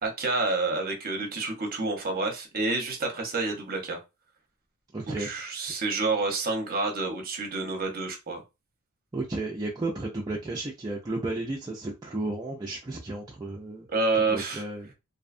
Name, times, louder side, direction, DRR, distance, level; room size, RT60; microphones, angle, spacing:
voice 1, 0.0-4.0 5.2-8.4 13.9-14.6, right 3 dB, 45° right, 4 dB, 0.7 m, -28 dB
voice 2, 4.9-5.3 9.1-13.9 14.3-14.9, right 2 dB, 20° right, -3 dB, 0.4 m, -33 dB
2.6 x 2.2 x 2.4 m, 0.25 s
head